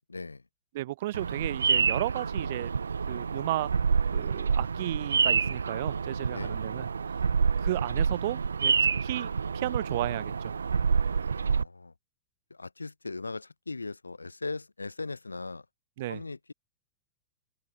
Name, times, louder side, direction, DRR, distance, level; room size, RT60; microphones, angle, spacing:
voice 1, 0.1-0.4 6.3-6.6 11.4-11.9 12.5-15.7 16.1-16.5, left 3 dB, 80° left, 6.0 m, -39 dB
voice 2, 0.7-2.7 3.1-3.7 4.1-6.9 7.6-8.7 9.0-10.5 16.0-16.2, right 16 dB, 55° right, 1.4 m, -33 dB
Bird vocalization bird call bird song, 1.1-11.6, right 5 dB, 75° right, 0.8 m, -28 dB
open air
figure-of-eight pair, 90°, 0 cm